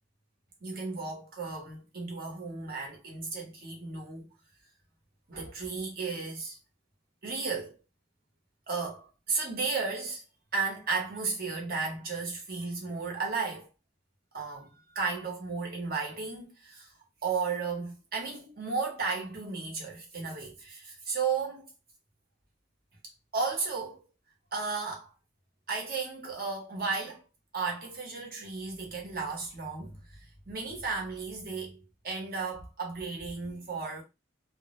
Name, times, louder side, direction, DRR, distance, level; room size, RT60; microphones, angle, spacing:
voice 1, 0.6-4.3 5.3-6.6 7.2-7.8 8.7-10.2 10.5-13.7 14.3-16.9 17.2-21.7 23.3-24.0 24.5-25.1 25.7-27.2 27.5-29.9 30.5-34.0, right 4 dB, 50° right, 0.8 m, -34 dB
2.1 x 2.0 x 2.9 m
head